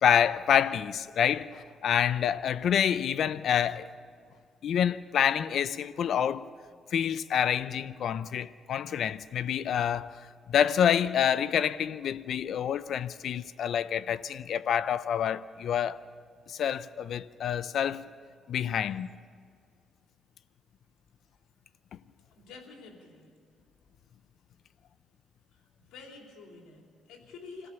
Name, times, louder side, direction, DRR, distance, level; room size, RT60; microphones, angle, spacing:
voice 1, 0.0-3.9 4.6-6.5 6.9-10.1 10.5-16.0 16.5-18.0 18.5-19.1, left 9 dB, 65° left, 0.5 m, -27 dB
voice 2, 22.3-23.3 25.5-27.7, left 4 dB, 85° left, 4.0 m, -49 dB
27.5 x 15.5 x 6.9 m
cardioid pair, 90°, 0 cm